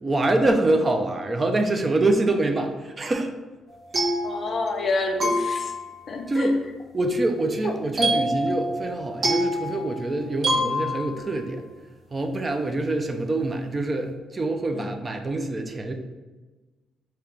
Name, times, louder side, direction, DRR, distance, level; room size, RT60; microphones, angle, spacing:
voice 1, 0.0-3.3 6.3-6.6 6.9-11.6 12.1-15.9, right 2 dB, 30° right, 4 dB, 0.4 m, -25 dB
sound 1, 3.7-4.9 5.2-6.1 8.0-11.4, equal, 55° right, 1.2 m, -26 dB
voice 2, 4.2-5.7 6.1-6.5 7.6-7.7 14.7-14.8, left 3 dB, 45° left, 3 dB, 0.6 m, -28 dB
3.5 x 2.8 x 3.2 m, 1.2 s
cardioid pair, 90°, 0 cm